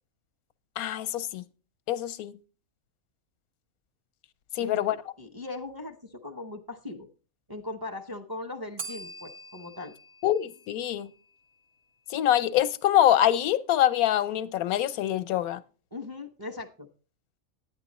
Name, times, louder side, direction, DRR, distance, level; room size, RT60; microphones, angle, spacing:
voice 1, 0.8-1.4 1.9-2.4 4.5-5.0 10.2-11.1 12.1-15.6, left 12 dB, 90° left, 1.1 m, -25 dB
voice 2, 4.6-4.9 5.2-7.1 7.5-9.9 15.9-16.9, left 2 dB, 20° right, 0.6 m, -39 dB
Bell, 8.8-11.6, right 3 dB, 45° right, 1.5 m, -44 dB
10.5 x 9.3 x 4.1 m
omnidirectional pair, 1.5 m